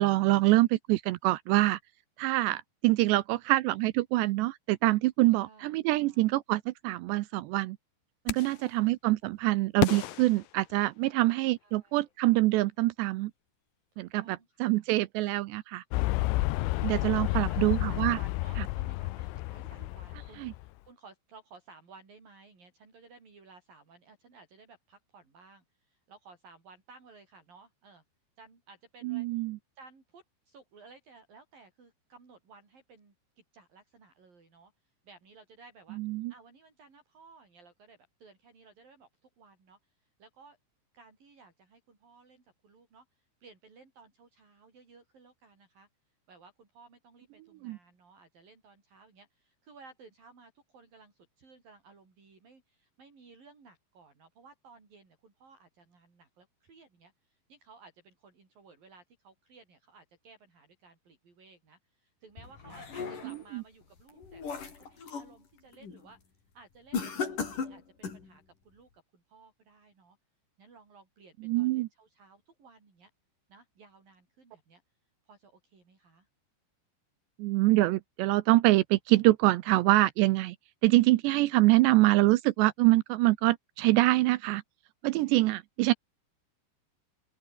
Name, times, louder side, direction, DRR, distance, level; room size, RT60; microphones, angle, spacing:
voice 1, 0.0-1.8 2.2-7.8 8.3-13.3 14.0-15.8 16.6-18.2 20.4-20.5 29.0-29.6 36.0-36.3 47.6-47.8 63.5-63.6 71.4-71.9 77.4-80.6 80.8-84.6 85.0-85.9, right 19 dB, 85° right, 2.7 m, -25 dB
voice 2, 5.3-6.3 8.4-8.9 11.0-12.1 13.9-14.9 16.1-28.0 28.4-29.4 29.8-36.0 36.3-40.6 40.9-45.9 46.3-66.2 66.5-70.2 70.6-73.1 73.5-74.8 75.3-76.3, right 4 dB, 50° right, 8.1 m, -57 dB
sound 1, 8.3-8.7 9.8-11.3, left 14 dB, 70° left, 2.2 m, -34 dB
sound 2, 15.9-20.7, left 19 dB, 90° left, 3.2 m, -30 dB
sound 3, 62.4-63.5 64.0-65.3 65.7-66.1 66.9-68.3, left 5 dB, 45° left, 6.0 m, -37 dB
open air
omnidirectional pair, 5.3 m